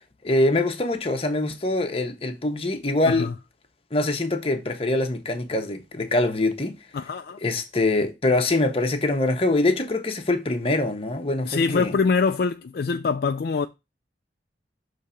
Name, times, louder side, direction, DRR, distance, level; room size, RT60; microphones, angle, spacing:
voice 1, 0.2-3.3 3.9-6.8 7.4-11.9, left 2 dB, 30° left, 1.0 m, -24 dB
voice 2, 6.9-7.4 11.4-13.7, left 4 dB, 55° left, 0.4 m, -24 dB
6.6 x 3.3 x 5.6 m
head